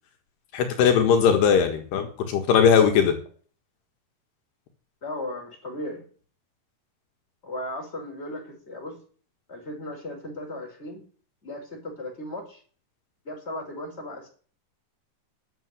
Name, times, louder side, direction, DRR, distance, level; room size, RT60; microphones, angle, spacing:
voice 1, 0.5-3.1, left 7 dB, 80° left, 4 dB, 3.7 m, -19 dB
voice 2, 5.0-6.0 7.4-9.0 9.5-11.0 11.4-12.6 13.2-14.3, left 1 dB, 15° left, 0 dB, 4.8 m, -36 dB
11.0 x 7.9 x 8.3 m, 0.43 s
omnidirectional pair, 4.7 m